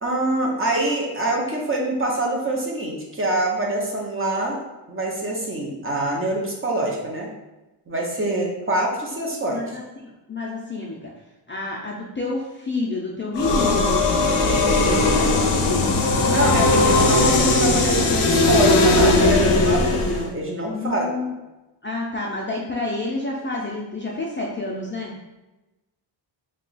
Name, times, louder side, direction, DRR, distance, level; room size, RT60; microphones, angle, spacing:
voice 1, 0.0-4.6 4.9-7.3 7.9-9.7 14.7-15.6 16.2-21.2, right 1 dB, 30° right, -1 dB, 0.6 m, -25 dB
voice 2, 9.5-11.1 11.5-16.0 20.7-21.3 21.8-25.1, left 2 dB, 30° left, -4 dB, 0.3 m, -29 dB
sound 1, 13.4-20.3, left 2 dB, 90° left, 0.7 m, -18 dB
2.8 x 2.3 x 3.9 m, 1.0 s
wide cardioid pair, 145°, 47 cm